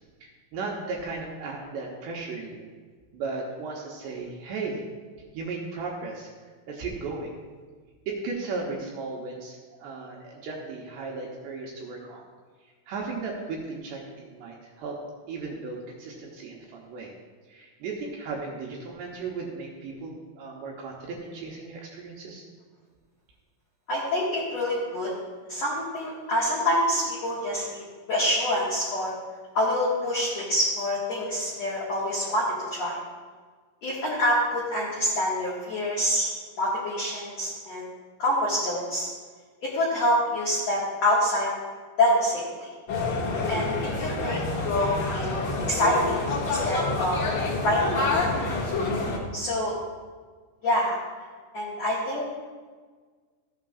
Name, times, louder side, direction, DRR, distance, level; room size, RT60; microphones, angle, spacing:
voice 1, 0.2-2.7 3.1-4.8 5.3-6.3 6.7-7.4 8.1-12.2 12.9-15.0 15.3-17.1 17.5-22.4, right 4 dB, 75° right, -2 dB, 2.7 m, -36 dB
voice 2, 23.9-25.1 25.5-27.8 28.1-29.1 29.5-33.0 33.8-36.3 36.6-37.9 38.2-39.1 39.7-41.5 42.0-42.7 43.5-47.2 47.6-48.0 49.3-49.7 50.6-50.9 51.5-52.2, left 1 dB, 85° left, -7 dB, 1.5 m, -26 dB
sound 1, 42.9-49.2, left 3 dB, 50° left, 2.3 m, -27 dB
14.5 x 8.7 x 2.4 m, 1.5 s
omnidirectional pair, 5.8 m